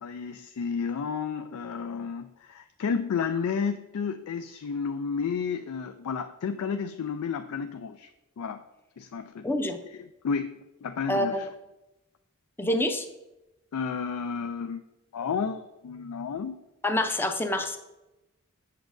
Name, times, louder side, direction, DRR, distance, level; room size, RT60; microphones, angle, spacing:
voice 1, 0.0-8.6 9.0-9.5 10.0-11.5 13.7-14.8 15.1-16.6, left 6 dB, 80° left, 9 dB, 0.4 m, -32 dB
voice 2, 9.4-9.8 11.1-11.5 12.6-13.1 16.8-17.8, left 1 dB, 10° left, 7 dB, 0.5 m, -26 dB
8.3 x 7.0 x 2.6 m, 0.98 s
head